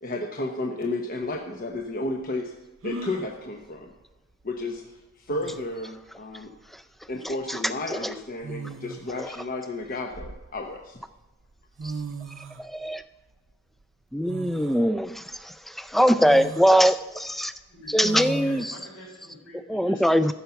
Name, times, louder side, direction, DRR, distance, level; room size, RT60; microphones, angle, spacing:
voice 1, 0.0-2.5 2.8-3.9 4.4-4.8 5.2-6.5 7.1-11.0, left 2 dB, 40° left, 2 dB, 0.9 m, -32 dB
sound 1, 1.2-1.3 2.8-3.3 4.8-4.9 5.3-5.8 7.1-7.3 8.4-9.2 9.8-10.8 11.5-11.6 11.8-12.7 14.3-14.9 15.4-15.5 16.2-16.7 18.0-18.6, right 3 dB, 65° right, 0.6 m, -37 dB
voice 2, 7.2-7.6 7.9-8.1 9.2-9.3 12.6-13.0 14.1-17.5 17.9-18.7 19.7-20.3, equal, ahead, 12 dB, 0.3 m, -22 dB
voice 3, 18.4-20.3, left 2 dB, 70° left, -10 dB, 5.0 m, -46 dB
14.5 x 5.8 x 6.9 m, 1.1 s
head